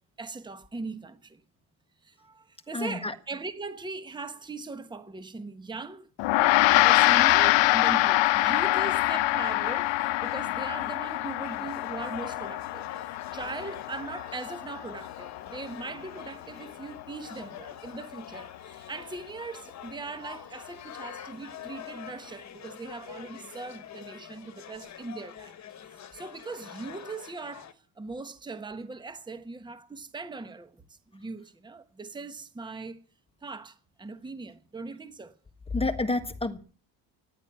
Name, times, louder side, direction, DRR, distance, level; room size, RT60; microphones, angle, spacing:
voice 1, 0.2-1.4 2.0-6.1 6.7-12.9 13.3-25.6 25.9-33.0 33.4-35.3, right 3 dB, 10° right, 1.1 m, -40 dB
voice 2, 2.7-3.1 35.7-36.6, left 2 dB, 15° left, 1.5 m, -29 dB
Gong, 6.2-15.7, left 17 dB, 75° left, 0.9 m, -25 dB
sound 1, 8.8-27.7, left 9 dB, 40° left, 1.5 m, -46 dB
15.0 x 10.5 x 8.5 m
cardioid pair, 140°, 44 cm